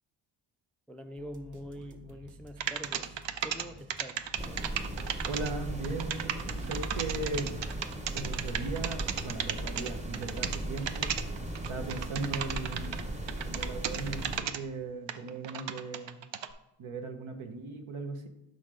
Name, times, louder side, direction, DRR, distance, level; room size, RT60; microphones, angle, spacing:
voice 1, 0.9-4.7, equal, 5° left, 8 dB, 0.3 m, -45 dB
sound 1, 1.2-13.4, right 2 dB, 40° right, 0.9 m, -53 dB
sound 2, 2.6-3.6 3.9-13.0 13.3-14.6 15.1-16.5, right 9 dB, 60° right, 0.6 m, -34 dB
sound 3, 4.4-14.4, right 1 dB, 15° right, 1.0 m, -37 dB
voice 2, 5.2-7.6 8.1-11.2 11.7-13.1 13.4-16.2 16.8-18.3, right 3 dB, 75° right, 6 dB, 1.1 m, -38 dB
6.4 x 4.2 x 4.8 m, 0.86 s
cardioid pair, 75°, 49 cm